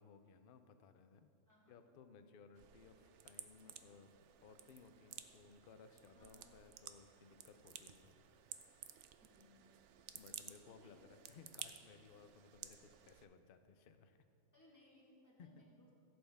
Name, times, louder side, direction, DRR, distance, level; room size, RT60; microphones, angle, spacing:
voice 1, 0.0-1.3 1.7-4.1 4.4-8.2 10.1-14.2 15.4-15.6, left 5 dB, 55° left, 8 dB, 0.7 m, -61 dB
voice 2, 1.5-1.9 6.1-6.6 9.2-9.8 10.6-11.5 14.5-15.9, left 1 dB, 15° left, -5 dB, 2.2 m, -67 dB
sound 1, 2.5-13.3, right 10 dB, 65° right, 0.8 m, -55 dB
15.5 x 7.9 x 3.5 m, 2.4 s
omnidirectional pair, 1.4 m